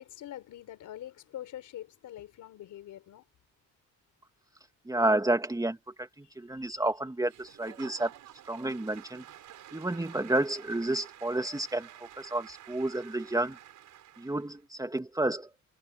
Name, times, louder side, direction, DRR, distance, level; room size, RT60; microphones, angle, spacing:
voice 1, 0.0-3.2 6.2-6.6, left 12 dB, 80° left, 4.3 m, -45 dB
voice 2, 4.9-8.1 8.5-9.2 9.7-13.6 14.2-15.5, right 2 dB, 10° right, 2.4 m, -30 dB
Applause / Crowd, 7.3-14.6, right 12 dB, 80° right, 6.0 m, -50 dB
cardioid pair, 90°, 30 cm